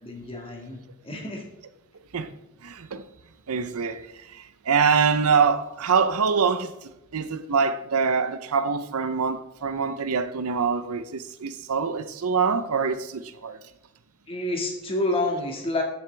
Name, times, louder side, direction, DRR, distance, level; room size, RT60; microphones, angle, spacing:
voice 1, 0.0-1.4 14.3-15.8, left 2 dB, 25° left, 1.9 m, -29 dB
voice 2, 2.6-3.1 3.5-13.6, right 5 dB, 80° right, 0.7 m, -25 dB
13.5 x 7.1 x 3.4 m
head